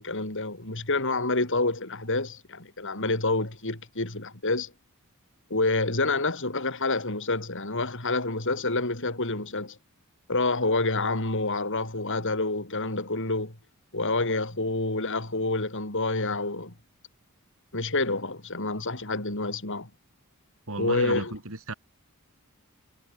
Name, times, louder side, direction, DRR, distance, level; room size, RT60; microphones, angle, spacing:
voice 1, 0.0-4.7 5.5-9.8 10.3-13.6 13.9-16.7 17.7-19.9 20.8-21.3, left 2 dB, 60° left, 6.0 m, -28 dB
voice 2, 20.7-21.7, right 2 dB, 65° right, 4.0 m, -33 dB
head